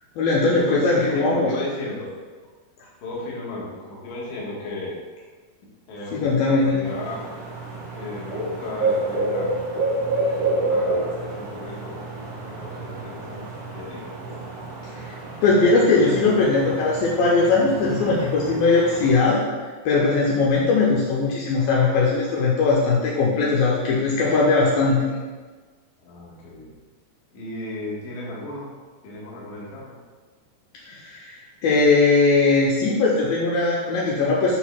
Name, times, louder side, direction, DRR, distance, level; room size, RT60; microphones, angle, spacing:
voice 1, 0.2-1.5 6.1-6.8 14.9-15.2 15.4-19.4 19.9-25.0 30.8-34.6, left 3 dB, 85° left, -4 dB, 2.1 m, -20 dB
voice 2, 0.7-2.1 3.0-5.0 5.9-7.3 7.9-9.7 10.3-12.0 12.4-14.1 26.0-26.8 27.3-28.7 29.0-30.0, left 2 dB, 60° left, -5 dB, 2.1 m, -34 dB
sound 1, 6.8-19.2, right 2 dB, 85° right, 1.2 m, -29 dB
9.7 x 4.4 x 2.2 m, 1.4 s
omnidirectional pair, 4.8 m